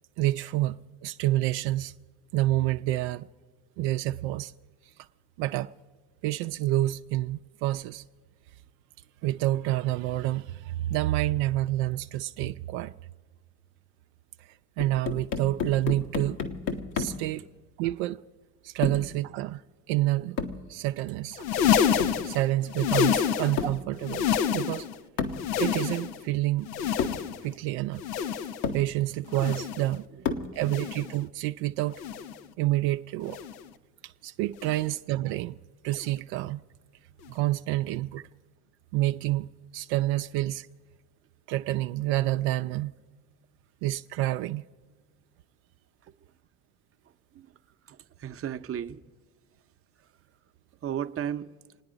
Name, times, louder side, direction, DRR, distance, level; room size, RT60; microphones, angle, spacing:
voice 1, 0.2-1.9 2.3-3.3 3.8-4.5 5.4-5.7 6.2-8.0 9.2-12.9 14.4-16.4 17.0-17.4 17.8-18.2 18.6-19.6 19.9-20.4 20.7-21.5 21.8-21.9 22.2-24.3 24.5-24.9 25.6-26.7 27.4-28.0 28.7-30.0 30.5-31.9 32.6-33.4 34.0-35.6 35.8-36.6 37.3-38.2 38.9-40.6 41.5-42.9 43.8-44.6, right 16 dB, 65° right, 0.5 m, -28 dB
sound 1, 14.8-17.3 18.8-19.2 20.4-20.7 22.0-22.3 23.6-23.9 25.2-25.5 26.4-26.5 27.0-27.3 28.1-28.2 28.6-28.9 30.3-30.6, left 5 dB, 65° left, 1.6 m, -32 dB
sound 2, 21.3-23.7 24.0-25.0 25.3-26.3 26.7-27.5 28.0-28.7 29.3-29.9 30.6-31.2 31.9-32.5 33.3-33.7 34.6-34.9 35.9-36.1 37.3-37.4, left 8 dB, 85° left, 0.7 m, -28 dB
voice 2, 47.9-49.0 50.8-51.5, right 9 dB, 30° right, 0.7 m, -34 dB
28.0 x 9.5 x 5.1 m
hypercardioid pair, 65°, 47 cm